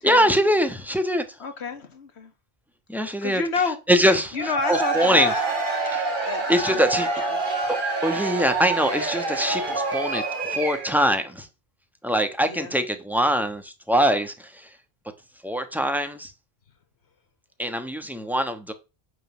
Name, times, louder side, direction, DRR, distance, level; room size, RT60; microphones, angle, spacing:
voice 1, 0.0-1.2 2.9-3.4 3.9-5.3 5.9-6.1 6.5-7.1 7.7-7.8 8.0-11.5 12.0-14.7 15.4-16.3 17.6-18.7, equal, ahead, 1.1 m, -23 dB
voice 2, 1.4-2.3 3.2-3.8 4.3-5.6 6.3-7.0 12.4-12.7, left 4 dB, 85° left, 1.7 m, -29 dB
Cheering / Crowd, 4.3-11.1, right 3 dB, 50° right, 1.8 m, -27 dB
9.2 x 3.8 x 6.2 m
omnidirectional pair, 1.1 m